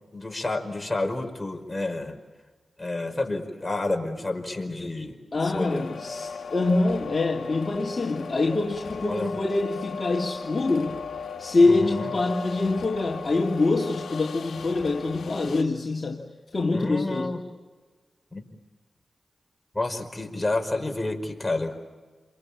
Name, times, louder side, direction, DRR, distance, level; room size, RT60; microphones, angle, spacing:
voice 1, 0.1-2.2 2.8-5.9 9.0-9.4 11.6-12.1 16.7-17.4 18.3-18.4 19.7-21.8, left 2 dB, 20° left, 4 dB, 5.3 m, -30 dB
voice 2, 5.3-11.0 11.4-16.2 16.5-17.3, left 3 dB, 45° left, -1 dB, 2.7 m, -25 dB
sound 1, 5.5-15.6, left 5 dB, 80° left, 1.6 m, -37 dB
29.0 x 23.0 x 8.8 m, 1.4 s
cardioid pair, 55°, 0 cm